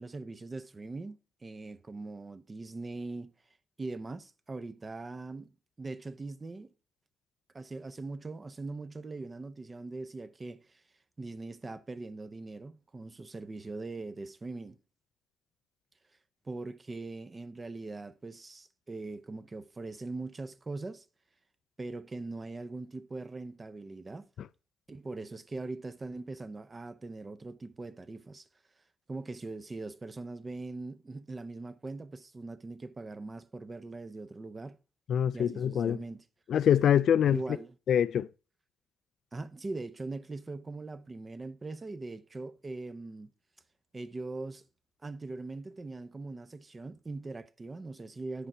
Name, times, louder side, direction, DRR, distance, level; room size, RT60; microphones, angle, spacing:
voice 1, 0.0-3.3 3.8-5.5 5.8-6.7 7.5-10.8 11.2-14.8 16.4-21.1 21.8-24.3 24.9-28.4 29.1-34.8 35.3-36.2 37.3-37.7 39.3-43.3 43.9-44.6 45.0-48.5, right 3 dB, 30° right, 0.7 m, -41 dB
voice 2, 35.1-36.0 36.5-37.4 37.9-38.3, left 9 dB, 60° left, 0.3 m, -24 dB
10.5 x 4.9 x 4.4 m
hypercardioid pair, 55°, 0 cm